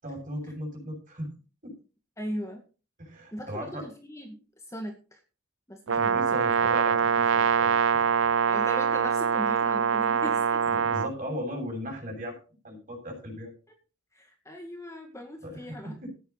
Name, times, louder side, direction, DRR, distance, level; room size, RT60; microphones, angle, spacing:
voice 1, 0.0-1.3 1.6-1.7 3.0-3.9 5.9-7.7 10.7-12.4 12.6-13.5 15.4-16.1, equal, 40° right, 2 dB, 7.2 m, -37 dB
voice 2, 2.2-2.6 3.3-5.2 5.7-6.2 8.5-10.7 14.1-16.1, equal, 15° left, 3 dB, 2.0 m, -39 dB
Brass instrument, 5.9-11.1, right 6 dB, 75° right, 0.6 m, -24 dB
14.5 x 10.5 x 4.1 m, 0.34 s
head